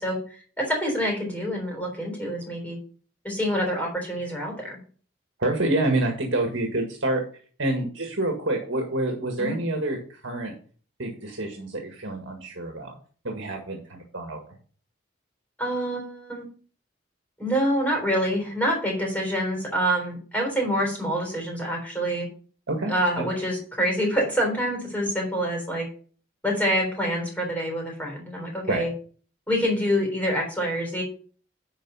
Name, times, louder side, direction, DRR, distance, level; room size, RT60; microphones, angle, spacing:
voice 1, 0.0-2.8 3.2-4.8 9.4-9.6 15.6-16.5 17.4-22.3 22.9-25.9 26.4-28.9 29.5-31.0, equal, 10° left, 0 dB, 3.6 m, -26 dB
voice 2, 5.4-7.2 7.6-10.5 11.0-12.9 13.2-14.4 22.7-23.3 28.7-28.9, right 2 dB, 65° right, 2 dB, 1.8 m, -27 dB
11.0 x 4.5 x 5.6 m, 0.43 s
head